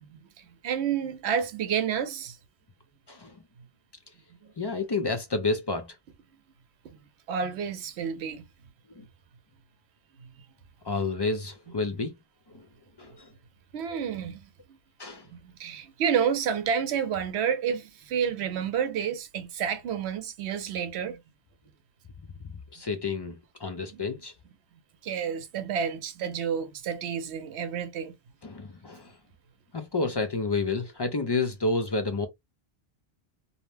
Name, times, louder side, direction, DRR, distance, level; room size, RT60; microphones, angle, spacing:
voice 1, 0.0-2.4 4.4-4.5 6.9-7.0 7.3-8.4 10.2-10.3 13.7-14.5 15.3-21.2 23.9-24.0 25.0-28.1, right 7 dB, 85° right, 0.9 m, -30 dB
voice 2, 4.6-5.9 9.0-9.1 10.8-12.1 12.5-12.7 13.0-13.3 15.0-15.3 22.7-24.3 28.4-29.1 29.7-32.3, left 3 dB, 45° left, 0.3 m, -30 dB
2.7 x 2.1 x 3.2 m
omnidirectional pair, 1.1 m